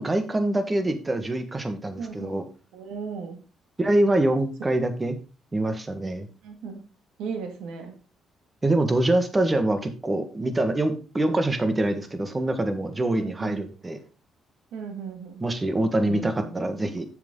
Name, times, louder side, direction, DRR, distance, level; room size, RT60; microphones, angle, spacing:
voice 1, 0.0-2.4 3.8-5.2 5.5-6.3 8.6-14.0 15.4-17.0, right 1 dB, 25° right, 8 dB, 1.6 m, -25 dB
voice 2, 2.0-2.4 2.7-3.4 6.4-6.8 7.2-8.0 13.1-13.6 14.7-15.4 16.0-16.8, right 5 dB, 80° right, 5 dB, 2.0 m, -36 dB
7.8 x 7.2 x 3.8 m, 0.34 s
supercardioid pair, 70°, 0 cm